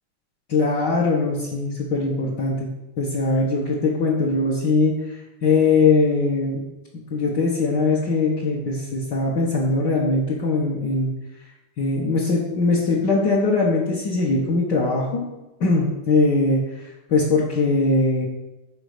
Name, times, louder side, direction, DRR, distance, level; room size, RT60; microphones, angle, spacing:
voice 1, 0.5-2.7 3.0-6.6 7.1-11.1 11.8-15.2 15.6-16.6 17.1-18.3, left 3 dB, 55° left, -5 dB, 1.7 m, -21 dB
9.8 x 3.9 x 6.6 m, 1.0 s
omnidirectional pair, 2.4 m